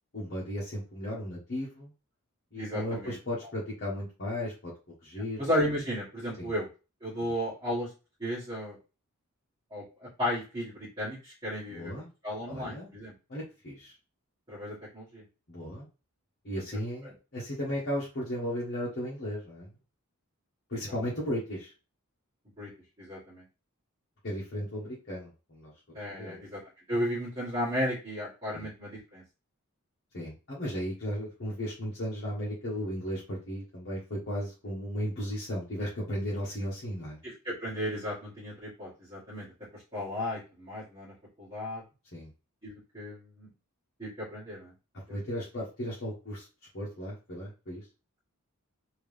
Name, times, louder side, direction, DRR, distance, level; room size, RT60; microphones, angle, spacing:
voice 1, 0.1-1.9 2.5-4.7 5.0-5.4 6.4-6.5 7.2-7.3 11.7-12.1 12.5-12.9 13.3-13.9 15.5-15.9 16.4-19.7 20.7-21.7 24.2-25.7 26.2-26.4 28.5-28.7 30.1-37.2 42.1-42.3 45.1-46.5 46.7-47.8, equal, 50° left, -6 dB, 1.2 m, -35 dB
voice 2, 2.6-3.2 5.4-6.7 7.0-7.9 8.2-8.8 9.7-11.9 12.2-13.1 14.5-15.2 17.0-17.1 20.7-21.0 22.6-22.7 23.0-23.4 25.9-26.6 26.9-29.2 37.2-39.5 39.7-41.8 42.6-43.5 44.0-44.7 45.3-45.4, equal, 20° right, -11 dB, 1.7 m, -34 dB
3.6 x 2.9 x 3.3 m, 0.31 s
head